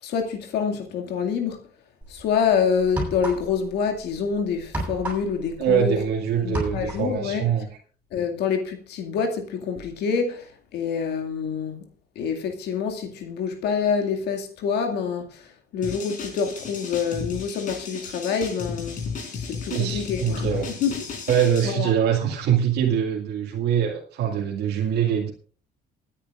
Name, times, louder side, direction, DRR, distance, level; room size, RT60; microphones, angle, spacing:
voice 1, 0.0-1.6 2.1-6.0 6.4-7.5 8.1-11.8 12.2-15.5 15.7-19.0 19.3-21.0 21.6-21.9, left 6 dB, 75° left, 2.3 m, -26 dB
sound 1, 2.0-2.2 2.8-3.7 4.0-6.1 6.4-7.2, right 1 dB, 10° right, 7.7 m, -31 dB
voice 2, 5.6-7.7 19.7-20.7 21.3-25.3, right 9 dB, 75° right, 2.2 m, -23 dB
sound 2, 15.8-21.7, left 5 dB, 50° left, 4.3 m, -34 dB
28.0 x 9.9 x 2.5 m
cardioid pair, 110°, 17 cm